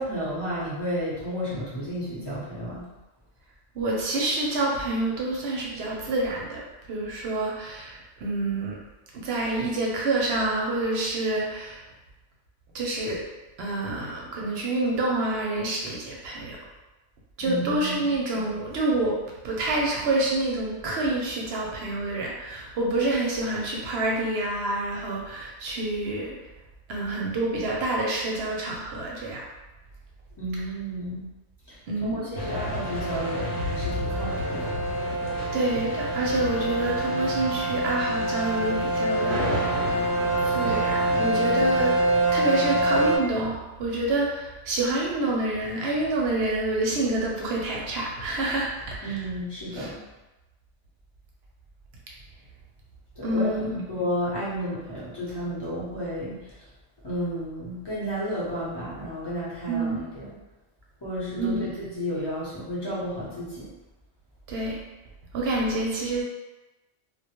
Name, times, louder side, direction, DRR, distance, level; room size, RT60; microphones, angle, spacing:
voice 1, 0.0-2.9 17.4-18.1 30.4-31.3 31.7-34.7 49.0-50.0 53.2-56.6 57.0-60.3 61.0-63.7, equal, 25° left, -9 dB, 0.7 m, -32 dB
voice 2, 3.7-6.6 6.9-8.8 9.1-11.9 12.7-13.2 13.6-16.6 17.4-19.2 19.4-26.3 26.9-29.4 31.9-32.3 35.5-39.9 40.4-41.9 42.3-49.3 49.7-49.9 53.2-53.7 59.7-60.0 61.4-61.7 64.5-64.8 65.3-66.2, right 2 dB, 65° right, -3 dB, 0.7 m, -27 dB
sound 1, 32.4-43.2, right 1 dB, 75° left, 0.9 m, -25 dB
2.1 x 2.1 x 2.8 m, 1.1 s
omnidirectional pair, 1.2 m